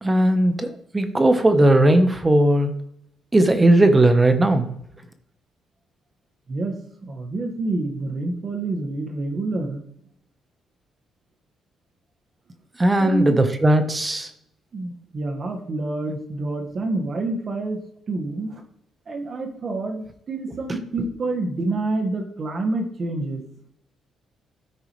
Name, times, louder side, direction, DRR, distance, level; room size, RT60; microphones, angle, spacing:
voice 1, 0.0-2.7 3.3-4.7 12.8-14.3, right 1 dB, 20° right, 8 dB, 1.3 m, -17 dB
voice 2, 7.0-9.8 13.0-13.4 14.7-18.6 19.1-23.4, right 2 dB, 45° right, 3 dB, 1.9 m, -27 dB
13.5 x 4.8 x 3.4 m, 0.72 s
cardioid pair, 90°, 0 cm